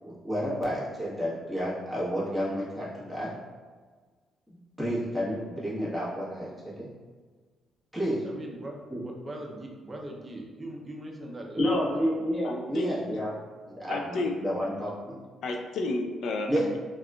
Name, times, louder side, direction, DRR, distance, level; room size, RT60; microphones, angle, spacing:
voice 1, 0.0-3.3 4.5-6.9 7.9-8.2 8.9-9.0 11.6-13.3 13.8-15.2 16.5-16.8, equal, 5° left, -8 dB, 1.1 m, -30 dB
voice 2, 8.2-12.0, right 1 dB, 25° right, 0 dB, 0.5 m, -40 dB
voice 3, 12.4-12.9 13.9-14.3 15.4-16.8, left 3 dB, 70° left, 3 dB, 0.4 m, -31 dB
3.5 x 2.4 x 2.3 m, 1.5 s
cardioid pair, 90°, 0 cm